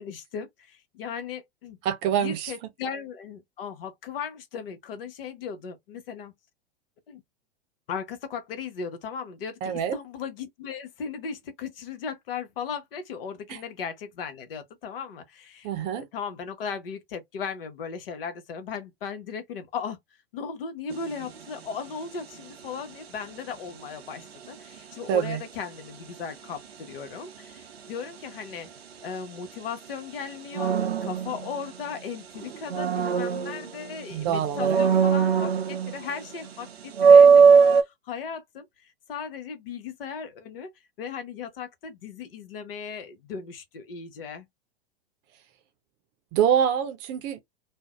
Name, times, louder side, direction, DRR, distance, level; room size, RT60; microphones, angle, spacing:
voice 1, 0.0-1.8 2.2-6.3 7.1-7.2 7.9-20.0 20.3-28.7 29.0-40.7 41.0-44.5, left 6 dB, 65° left, 0.9 m, -37 dB
voice 2, 1.8-2.5 9.6-10.0 13.5-13.6 15.6-16.1 25.1-25.4 34.1-34.8 46.3-47.4, right 8 dB, 35° right, 0.6 m, -25 dB
sound 1, 20.9-21.2 30.5-32.0 32.4-34.1 34.5-36.1 36.4-36.5 36.9-37.8, right 6 dB, 85° right, 0.6 m, -19 dB
2.5 x 2.1 x 2.3 m
hypercardioid pair, 100°, 30 cm